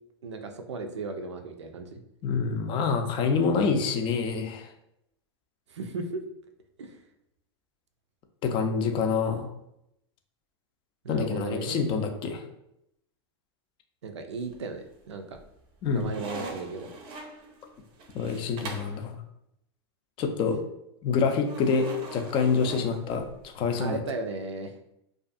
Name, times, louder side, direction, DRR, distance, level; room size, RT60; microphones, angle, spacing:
voice 1, 0.2-2.0 5.7-6.2 6.8-7.0 11.0-11.9 14.0-15.2 15.9-16.9 23.8-24.7, right 3 dB, 90° right, 5 dB, 0.4 m, -35 dB
voice 2, 2.2-4.7 8.4-9.5 11.1-12.4 15.8-16.1 18.1-19.2 20.2-20.6 21.0-23.2 23.5-24.0, left 5 dB, 35° left, 5 dB, 0.4 m, -26 dB
sound 1, 14.3-14.9 15.3-19.0 21.5-23.5, right 2 dB, 35° right, 0.5 m, -42 dB
2.3 x 2.3 x 2.6 m, 0.80 s
hypercardioid pair, 105°, 14 cm